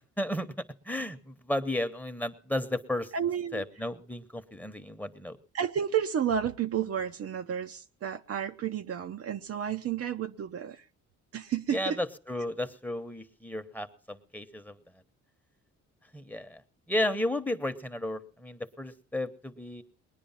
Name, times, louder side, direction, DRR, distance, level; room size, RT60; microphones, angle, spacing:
voice 1, 0.0-3.1 3.5-5.4 11.7-14.8 16.1-16.6 16.9-19.8, left 1 dB, 5° left, 1.0 m, -33 dB
voice 2, 3.1-3.6 5.5-10.8 11.3-12.0, right 8 dB, 50° right, 0.7 m, -31 dB
20.5 x 10.0 x 5.6 m
cardioid pair, 90°, 30 cm